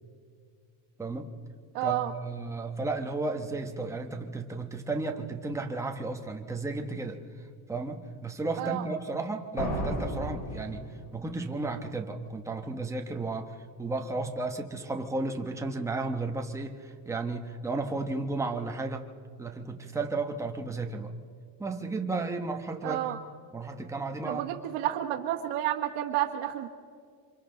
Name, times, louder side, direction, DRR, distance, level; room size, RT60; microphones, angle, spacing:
voice 1, 1.0-1.3 1.8-7.2 7.7-10.9 11.1-19.0 19.4-21.1 21.6-23.2 23.5-24.4, right 3 dB, 5° right, 3 dB, 1.1 m, -33 dB
voice 2, 1.7-2.1 8.6-8.8 22.8-23.2 24.2-26.7, right 13 dB, 85° right, 0 dB, 1.6 m, -30 dB
sound 1, 9.6-11.4, equal, 65° left, 7.0 m, -33 dB
28.5 x 26.0 x 3.9 m, 2.2 s
cardioid pair, 165°, 49 cm